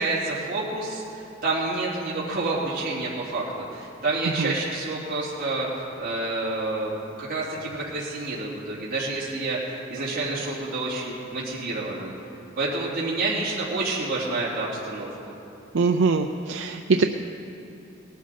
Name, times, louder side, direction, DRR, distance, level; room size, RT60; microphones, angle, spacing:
voice 1, 0.0-12.1 12.6-15.3, right 2 dB, 45° right, -7 dB, 3.0 m, -29 dB
voice 2, 15.7-17.0, right 4 dB, 65° right, 4 dB, 0.5 m, -22 dB
19.0 x 12.0 x 4.2 m, 2.8 s
head